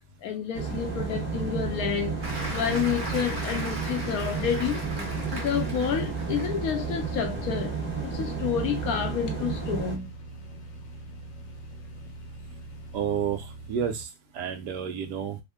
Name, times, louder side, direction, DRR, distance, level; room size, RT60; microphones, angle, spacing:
voice 1, 0.2-2.2 2.5-4.9 5.3-7.8 8.1-10.1, left 8 dB, 70° left, 0.9 m, -29 dB
sound 1, 0.5-10.0, right 5 dB, 10° right, 0.9 m, -32 dB
sound 2, 1.1-14.1, right 1 dB, 85° left, 1.3 m, -43 dB
Applause, 2.2-6.7 7.2-7.4, right 1 dB, 45° right, 1.7 m, -38 dB
voice 2, 12.9-15.4, right 8 dB, 70° right, 1.2 m, -31 dB
3.4 x 2.1 x 3.5 m
omnidirectional pair, 1.9 m